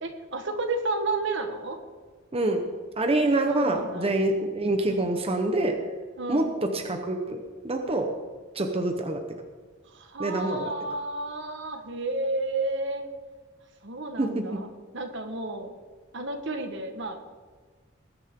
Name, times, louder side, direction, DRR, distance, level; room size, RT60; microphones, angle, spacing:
voice 1, 0.0-1.8 3.5-4.1 6.2-6.5 9.9-13.1 13.8-15.7 16.1-17.2, right 2 dB, 65° right, 5 dB, 1.5 m, -32 dB
voice 2, 2.3-2.6 3.0-5.8 6.3-6.5 6.7-7.4 7.6-8.1 8.5-9.2 10.2-10.7 14.2-14.6, right 2 dB, 30° right, 4 dB, 1.1 m, -26 dB
20.0 x 10.5 x 3.8 m, 1.5 s
head